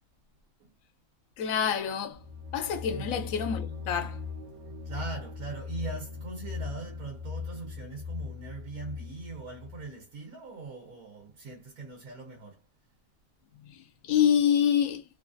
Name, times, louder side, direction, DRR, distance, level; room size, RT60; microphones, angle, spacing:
voice 1, 1.4-2.2 2.5-4.2 13.7-15.0, left 8 dB, 75° left, 1.0 m, -27 dB
sound 1, 2.1-9.9, left 5 dB, 65° right, 0.9 m, -39 dB
voice 2, 2.9-3.3 4.8-12.6, right 3 dB, 85° right, 1.4 m, -41 dB
3.0 x 2.3 x 2.4 m
omnidirectional pair, 1.5 m